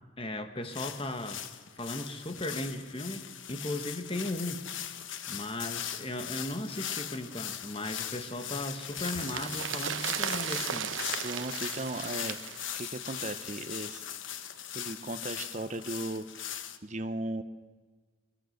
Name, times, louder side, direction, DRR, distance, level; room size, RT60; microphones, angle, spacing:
voice 1, 0.2-1.5 1.7-4.6 5.3-10.9, left 1 dB, 25° left, 8 dB, 1.5 m, -36 dB
sound 1, 0.7-16.8, left 10 dB, 65° left, 1.1 m, -40 dB
sound 2, 8.2-13.6 13.9-14.0, right 8 dB, 70° right, 1.1 m, -37 dB
voice 2, 11.2-14.0 14.7-17.4, right 2 dB, 35° right, 9 dB, 0.9 m, -37 dB
22.5 x 22.0 x 6.6 m, 1.3 s
head